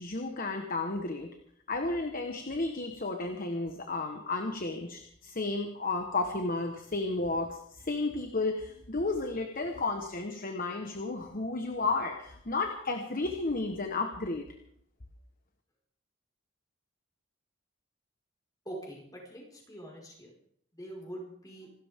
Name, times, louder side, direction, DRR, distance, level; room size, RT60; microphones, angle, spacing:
voice 1, 0.0-1.3 1.7-14.5, left 3 dB, 45° left, 5 dB, 1.3 m, -32 dB
voice 2, 18.6-20.3 20.7-21.7, right 1 dB, 20° left, -2 dB, 5.0 m, -44 dB
27.0 x 13.0 x 3.7 m, 0.68 s
head